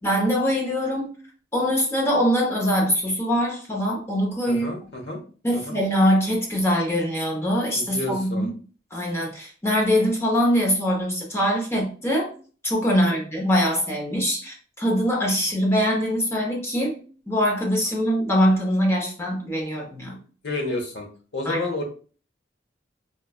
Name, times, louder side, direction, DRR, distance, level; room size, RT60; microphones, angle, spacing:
voice 1, 0.0-1.1 1.5-4.7 5.4-8.5 8.9-12.3 12.6-17.0 17.3-20.2 21.4-21.6, equal, 15° left, -1 dB, 0.8 m, -23 dB
voice 2, 4.5-5.2 5.7-5.8 7.7-8.5 13.0-13.1 20.4-21.1 21.3-21.8, left 2 dB, 75° left, 1 dB, 1.0 m, -30 dB
4.1 x 2.3 x 2.3 m, 0.40 s
head